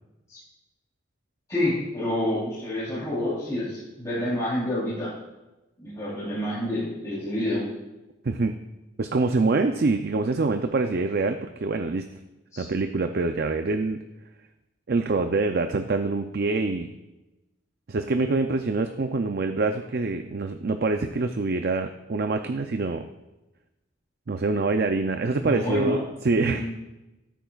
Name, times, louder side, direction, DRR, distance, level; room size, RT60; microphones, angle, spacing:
voice 1, 1.5-5.1 5.8-7.6 12.5-12.6 25.4-26.0 26.4-26.5, left 1 dB, 15° left, -10 dB, 3.4 m, -28 dB
voice 2, 9.0-12.1 12.6-14.0 14.9-16.9 17.9-23.1 24.3-26.7, right 3 dB, 55° right, 6 dB, 0.5 m, -25 dB
17.5 x 9.1 x 2.4 m, 1.0 s
head